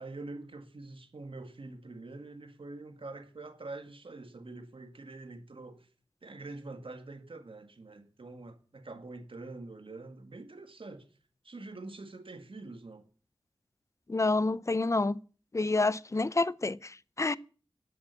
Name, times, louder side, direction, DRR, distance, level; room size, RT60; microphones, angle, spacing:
voice 1, 0.0-5.9 6.2-11.1 11.4-13.1, right 2 dB, 65° right, 1.8 m, -45 dB
voice 2, 14.1-15.2 15.5-17.4, left 3 dB, 30° left, 0.6 m, -28 dB
11.0 x 7.8 x 8.2 m
wide cardioid pair, 55°, 10 cm